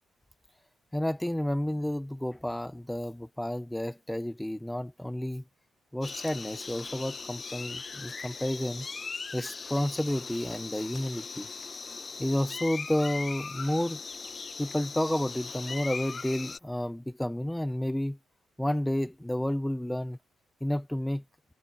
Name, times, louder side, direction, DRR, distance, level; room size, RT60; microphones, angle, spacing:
voice 1, 0.9-5.4 5.9-8.9 9.3-11.5 12.2-14.0 14.6-18.2 18.6-20.2 20.6-21.2, left 1 dB, 5° left, 1.0 m, -31 dB
sound 1, 6.0-16.6, left 4 dB, 40° left, 1.4 m, -40 dB
hypercardioid pair, 40°, 0 cm